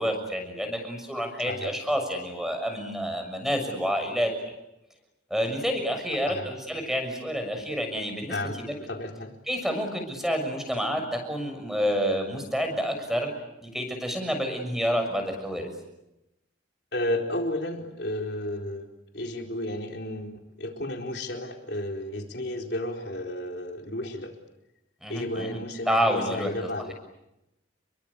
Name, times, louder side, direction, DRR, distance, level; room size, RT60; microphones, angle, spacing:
voice 1, 0.0-4.3 5.3-8.7 9.5-13.3 13.6-15.7 25.0-25.6 25.9-26.5, equal, ahead, 5 dB, 6.6 m, -28 dB
voice 2, 8.3-9.4 16.9-18.9 19.1-24.3 25.1-26.9, left 1 dB, 60° left, 3 dB, 4.5 m, -32 dB
30.0 x 23.5 x 8.5 m, 0.90 s
head